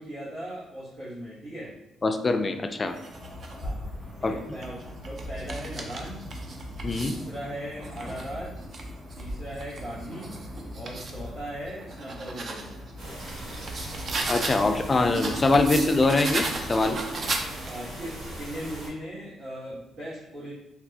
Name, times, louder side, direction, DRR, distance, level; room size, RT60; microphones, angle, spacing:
voice 1, 0.0-1.7 3.6-3.8 4.2-6.2 6.9-8.5 9.1-10.3 10.7-12.8 17.6-20.5, equal, 65° right, -12 dB, 1.3 m, -38 dB
voice 2, 2.0-3.0 4.2-4.4 6.8-7.1 14.3-17.0, left 3 dB, 30° left, 7 dB, 0.3 m, -23 dB
sound 1, 2.9-3.7 4.4-7.3 7.8-11.2 11.7-14.7 15.1-17.9, right 3 dB, 50° right, 0.4 m, -36 dB
sound 2, 3.1-16.8, left 1 dB, 10° right, 1.4 m, -42 dB
sound 3, 13.0-18.9, right 1 dB, 80° right, 1.4 m, -39 dB
3.4 x 2.3 x 2.7 m, 0.89 s
cardioid pair, 90°, 0 cm